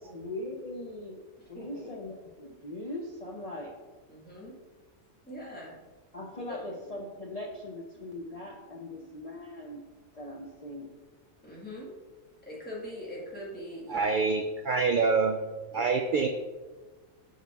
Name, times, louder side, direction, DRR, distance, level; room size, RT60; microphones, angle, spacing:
voice 1, 0.1-1.2 1.5-3.7 6.1-9.8 10.1-10.9, left 1 dB, 40° left, -1 dB, 0.5 m, -40 dB
voice 2, 1.3-1.9 4.1-4.5 5.3-5.8 6.5-6.6 11.4-11.9 12.4-14.1 14.9-15.1 15.7-15.8, left 1 dB, 5° left, -6 dB, 1.8 m, -42 dB
voice 3, 13.9-15.4 15.7-16.3, right 4 dB, 75° right, 5 dB, 0.4 m, -26 dB
6.4 x 5.9 x 3.5 m, 1.3 s
omnidirectional pair, 1.4 m